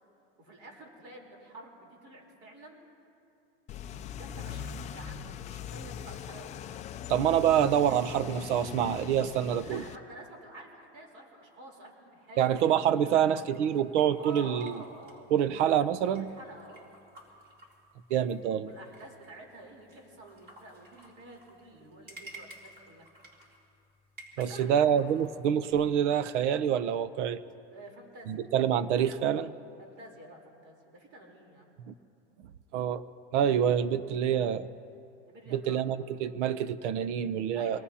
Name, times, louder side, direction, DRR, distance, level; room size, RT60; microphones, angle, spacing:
voice 1, 0.4-2.8 4.2-6.6 9.6-12.5 13.0-13.4 14.2-15.4 15.7-15.8 16.1-16.9 18.6-23.1 24.3-24.9 27.7-28.4 29.8-31.8 35.3-35.8 37.5-37.8, right 1 dB, 40° right, 0 dB, 3.8 m, -49 dB
sound 1, 3.7-10.0, left 8 dB, 20° left, 0.4 m, -41 dB
voice 2, 7.1-9.8 12.4-14.8 15.3-16.3 18.1-18.7 24.4-27.4 28.3-29.5 31.9-32.0 32.7-33.0 33.3-34.7 35.5-37.8, right 9 dB, 80° right, 14 dB, 0.8 m, -26 dB
sound 2, 12.4-25.9, right 1 dB, 25° right, 3.0 m, -55 dB
26.0 x 18.5 x 2.8 m, 2.6 s
supercardioid pair, 140°, 35 cm